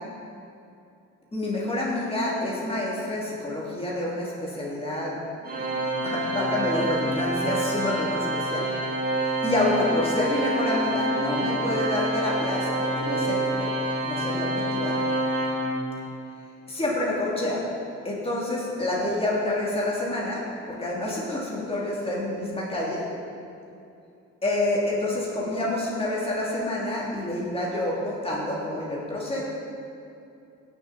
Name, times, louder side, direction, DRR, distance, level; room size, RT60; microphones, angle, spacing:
voice 1, 1.3-5.6 6.0-8.7 9.4-13.7 14.0-15.0 16.7-17.6 18.0-23.1 24.4-29.4, left 1 dB, 20° left, -5 dB, 2.7 m, -28 dB
Organ, 5.4-16.2, right 1 dB, 30° right, 2.9 m, -27 dB
17.0 x 7.0 x 4.1 m, 2.6 s
cardioid pair, 90°, 30 cm